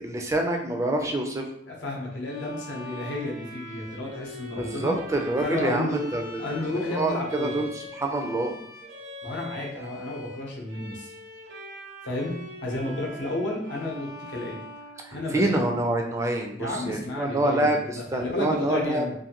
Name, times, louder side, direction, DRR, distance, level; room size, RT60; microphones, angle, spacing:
voice 1, 0.0-1.4 4.6-6.4 6.9-8.6 15.0-19.1, right 1 dB, 15° right, 2 dB, 0.3 m, -26 dB
voice 2, 1.7-5.0 5.4-6.0 6.4-7.6 9.2-11.1 12.0-12.3 12.6-14.6 15.1-15.6 16.6-19.1, left 2 dB, 80° left, -2 dB, 0.8 m, -32 dB
Bowed string instrument, 2.2-15.7, left 1 dB, 70° right, 0.6 m, -42 dB
2.5 x 2.5 x 2.8 m, 0.71 s
head